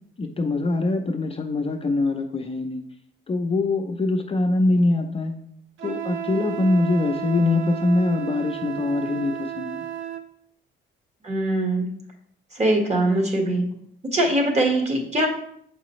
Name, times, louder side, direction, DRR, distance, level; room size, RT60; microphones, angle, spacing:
voice 1, 0.2-2.8 3.3-5.3 5.8-9.8, left 2 dB, 30° left, 3 dB, 0.6 m, -23 dB
Wind instrument woodwind instrument, 5.8-10.3, right 9 dB, 75° right, 0.7 m, -32 dB
voice 2, 11.2-11.9 12.5-13.7 14.1-15.3, right 1 dB, 35° right, 1 dB, 1.6 m, -22 dB
6.8 x 4.8 x 3.1 m, 0.68 s
cardioid pair, 90°, 20 cm